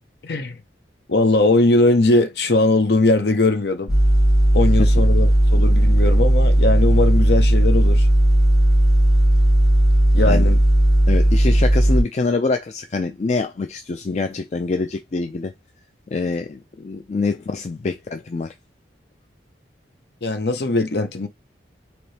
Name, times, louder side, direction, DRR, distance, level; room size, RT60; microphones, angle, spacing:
voice 1, 0.2-0.6 1.1-4.0 4.5-8.1 10.1-10.6 20.2-21.3, left 2 dB, 60° left, 0.7 m, -19 dB
sound 1, 3.9-12.0, right 1 dB, 5° right, 2.5 m, -15 dB
voice 2, 11.1-15.5 16.1-18.5, left 3 dB, 35° left, 0.3 m, -25 dB
4.1 x 2.9 x 3.2 m
head